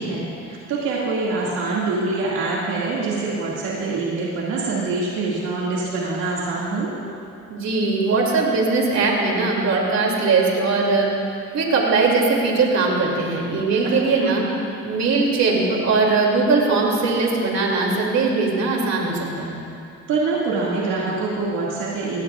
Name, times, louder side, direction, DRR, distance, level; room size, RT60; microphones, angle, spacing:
voice 1, 0.0-7.0 13.8-14.5 20.1-22.2, right 3 dB, 85° right, -6 dB, 2.2 m, -25 dB
voice 2, 7.5-11.1 11.5-14.4 14.8-19.6, right 3 dB, 65° right, -1 dB, 2.7 m, -20 dB
19.5 x 16.0 x 2.4 m, 2.6 s
cardioid pair, 90°, 30 cm